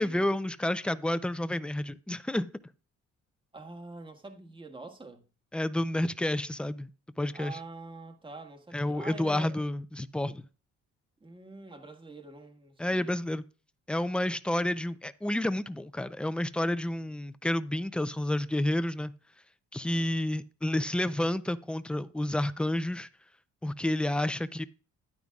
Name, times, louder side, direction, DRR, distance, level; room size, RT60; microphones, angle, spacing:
voice 1, 0.0-2.5 5.5-6.9 7.2-7.6 8.7-10.5 12.8-13.4 13.9-19.1 19.7-23.1 23.6-24.6, left 1 dB, 5° left, 0.5 m, -30 dB
voice 2, 3.5-5.2 7.3-9.6 11.2-13.2 19.8-20.2, right 3 dB, 15° right, 1.7 m, -46 dB
10.5 x 9.3 x 2.4 m
cardioid pair, 90°, 30 cm